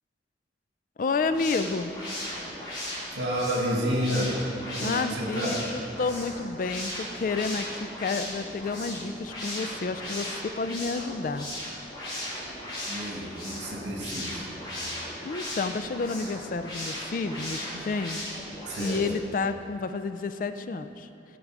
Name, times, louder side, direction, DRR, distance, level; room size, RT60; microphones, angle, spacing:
voice 1, 1.0-1.9 4.8-11.5 15.2-18.2 18.8-21.1, left 4 dB, 50° left, 10 dB, 0.3 m, -30 dB
sound 1, 1.1-19.2, left 1 dB, 25° left, 2.4 m, -37 dB
voice 2, 3.2-4.4 4.8-5.6 12.9-14.5 18.7-19.0, equal, 75° right, -1 dB, 1.9 m, -30 dB
14.0 x 5.3 x 4.8 m, 2.7 s
head